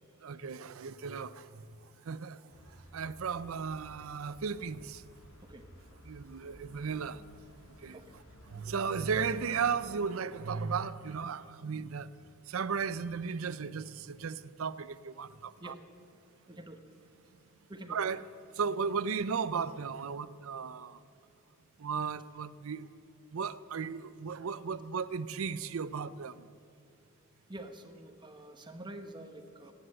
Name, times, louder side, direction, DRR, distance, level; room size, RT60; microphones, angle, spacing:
voice 1, 0.2-1.6 2.0-2.4 2.7-5.0 6.0-7.2 7.8-8.0 8.5-12.1 12.5-15.7 17.9-18.2 18.6-21.0 21.8-22.9 23.3-26.5, right 6 dB, 75° right, 0.5 m, -35 dB
sound 1, 2.5-9.8, equal, 75° left, 2.4 m, -55 dB
voice 2, 16.5-16.8 17.7-18.0 27.5-29.7, right 1 dB, 20° right, 1.1 m, -47 dB
16.0 x 9.9 x 7.8 m
head